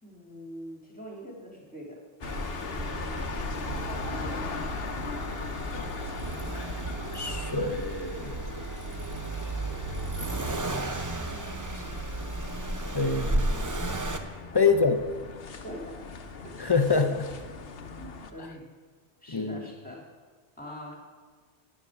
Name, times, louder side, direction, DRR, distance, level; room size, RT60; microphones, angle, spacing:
voice 1, 0.0-2.0 14.5-14.8 15.6-16.6 18.0-18.6 19.2-20.1 20.6-20.9, equal, 10° left, -2 dB, 2.7 m, -43 dB
sound 1, 2.2-18.3, left 4 dB, 70° left, 1.1 m, -39 dB
Accelerating revving vroom, 2.2-14.2, right 2 dB, 20° right, 0.6 m, -34 dB
voice 2, 7.1-8.5 11.7-11.8 12.9-13.5 14.5-15.0 16.6-17.3 19.3-19.6, left 4 dB, 25° left, 7 dB, 0.7 m, -25 dB
9.8 x 9.5 x 6.2 m, 1.5 s
omnidirectional pair, 1.1 m